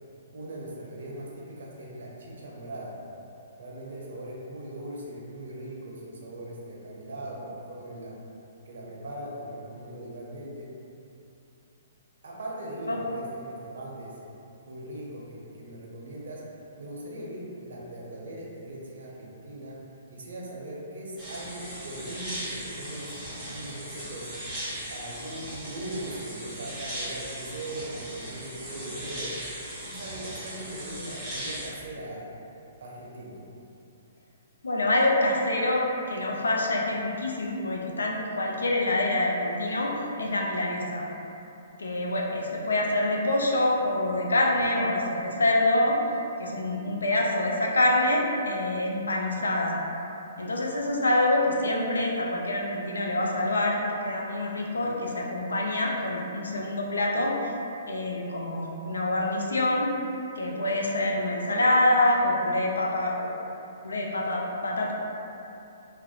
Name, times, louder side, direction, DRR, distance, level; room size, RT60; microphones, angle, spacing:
voice 1, 0.3-3.0 3.6-8.2 8.6-10.7 12.2-14.2 14.7-16.4 16.8-19.8 20.1-24.3 24.9-29.4 29.8-32.3 32.8-33.5, right 1 dB, 70° right, -3 dB, 0.5 m, -40 dB
sound 1, 21.2-31.7, equal, 5° right, 1.2 m, -38 dB
voice 2, 34.6-41.1 41.8-46.0 46.4-49.8 50.4-57.5 57.9-59.9 60.4-63.3 63.8-64.9, left 1 dB, 80° left, -1 dB, 0.4 m, -26 dB
2.4 x 2.0 x 2.7 m, 2.7 s
figure-of-eight pair, 125°, 0 cm